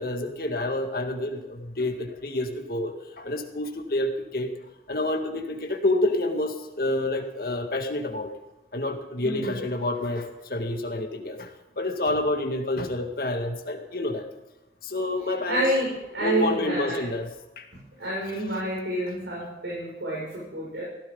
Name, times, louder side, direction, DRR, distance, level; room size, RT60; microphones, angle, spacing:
voice 1, 0.0-4.5 4.9-8.3 8.7-14.3 14.8-15.6 16.2-17.3 17.6-17.7, left 2 dB, 55° left, 3 dB, 2.1 m, -28 dB
voice 2, 9.2-9.5 15.5-17.0 18.0-20.8, right 1 dB, 80° right, -5 dB, 6.8 m, -28 dB
17.0 x 15.5 x 4.0 m, 0.99 s
head